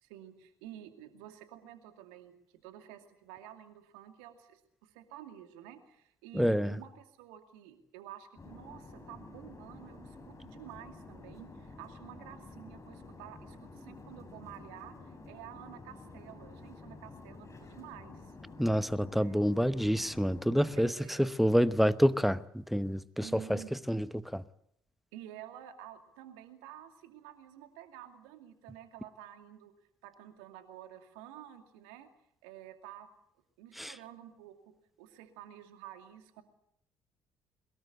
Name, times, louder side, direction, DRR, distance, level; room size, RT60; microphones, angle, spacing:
voice 1, 0.0-2.4 2.6-18.3 19.2-19.4 20.8-21.3 23.2-23.7 25.1-29.7 30.0-32.1 32.4-33.1 33.6-36.4, right 11 dB, 70° right, 2.5 m, -50 dB
voice 2, 6.3-6.8 18.6-23.6 23.9-24.4 33.8-33.9, equal, ahead, 1.0 m, -28 dB
sound 1, 8.4-20.8, left 3 dB, 30° left, 5.8 m, -50 dB
23.0 x 21.5 x 8.0 m
figure-of-eight pair, 50°, 11 cm